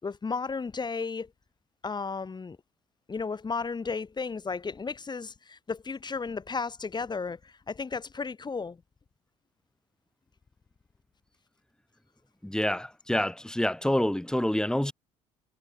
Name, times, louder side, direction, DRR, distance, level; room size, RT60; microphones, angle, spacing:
voice 1, 0.0-1.3 1.8-2.6 3.1-8.8, left 4 dB, 30° left, 5.9 m, -34 dB
voice 2, 12.4-14.9, left 1 dB, 5° left, 4.8 m, -27 dB
hypercardioid pair, 60°, 15 cm